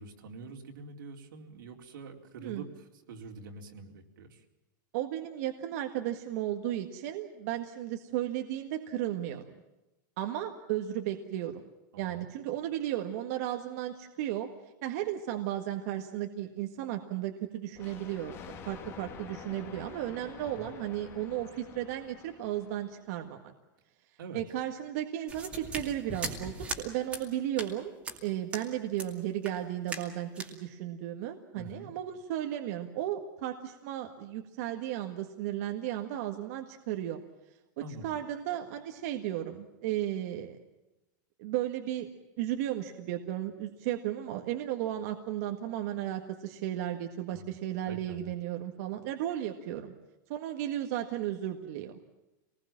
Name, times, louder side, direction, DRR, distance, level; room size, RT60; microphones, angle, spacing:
voice 1, 0.0-4.4 11.9-12.3 20.4-20.7 24.2-24.4 31.5-31.9 37.8-38.2 47.3-47.6 47.9-48.3, right 3 dB, 85° right, 2 dB, 4.2 m, -46 dB
voice 2, 4.9-9.4 10.2-11.6 12.0-14.5 14.8-23.5 24.3-27.9 28.2-37.2 38.0-40.6 41.4-42.1 42.4-49.9 50.3-52.0, right 12 dB, 45° right, 4 dB, 1.7 m, -34 dB
Thunder, 17.7-23.1, left 7 dB, 25° left, 2.2 m, -48 dB
sound 1, 25.3-26.8 27.1-27.2 27.6-27.7 28.0-28.2 28.5-28.7 29.0-29.1 29.4-29.6 29.9-30.1 30.4-30.5, right 3 dB, 10° right, 2.4 m, -38 dB
26.0 x 20.0 x 7.4 m, 0.97 s
supercardioid pair, 170°, 11 cm